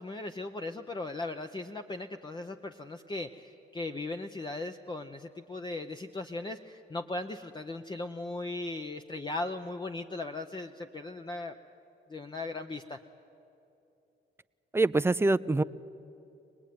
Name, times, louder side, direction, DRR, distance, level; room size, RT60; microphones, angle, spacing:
voice 1, 0.0-11.5 12.1-13.0, left 2 dB, 20° left, 5 dB, 0.8 m, -38 dB
voice 2, 14.7-15.6, right 2 dB, 10° right, 15 dB, 0.5 m, -24 dB
24.5 x 19.5 x 9.4 m, 2.9 s
cardioid pair, 90°, 20 cm